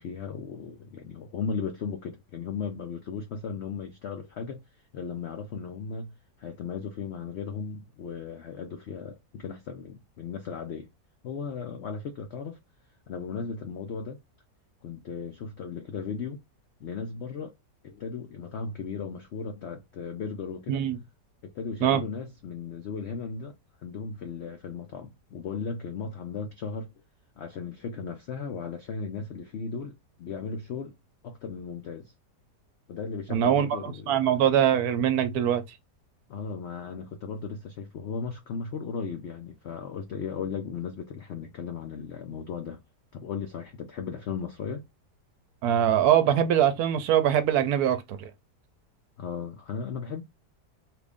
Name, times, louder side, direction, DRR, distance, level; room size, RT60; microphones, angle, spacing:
voice 1, 0.0-4.6 4.9-6.1 6.4-10.9 11.2-12.6 13.1-14.2 14.8-16.4 16.8-17.5 17.8-20.9 21.4-23.5 23.8-26.9 27.4-30.9 31.2-32.1 32.9-34.3 36.3-42.8 43.1-44.8 49.2-50.2, left 5 dB, 85° left, 0.5 m, -36 dB
voice 2, 33.3-35.6 45.6-48.3, right 10 dB, 70° right, 1.0 m, -23 dB
3.0 x 2.5 x 3.4 m
omnidirectional pair, 1.8 m